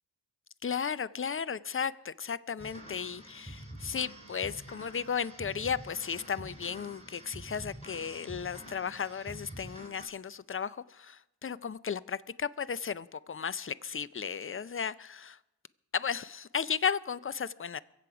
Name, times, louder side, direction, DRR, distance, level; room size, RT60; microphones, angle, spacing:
voice 1, 0.6-15.4 15.9-17.8, left 7 dB, 30° left, 0.5 m, -35 dB
sound 1, 2.6-10.1, right 1 dB, 15° left, 3.7 m, -47 dB
23.0 x 7.8 x 4.9 m
cardioid pair, 40°, 43 cm